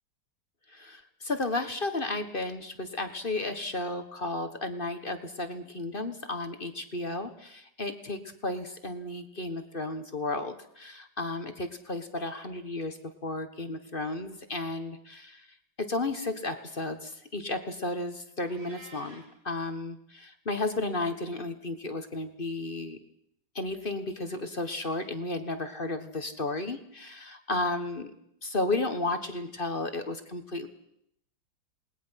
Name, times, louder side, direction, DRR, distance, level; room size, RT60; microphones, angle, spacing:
voice 1, 0.7-15.5 15.8-23.0 23.5-28.1 28.4-30.7, left 2 dB, 30° left, 8 dB, 1.5 m, -33 dB
Meow, 18.4-19.3, right 2 dB, 70° right, 6.2 m, -50 dB
28.5 x 20.0 x 5.8 m, 0.74 s
omnidirectional pair, 2.0 m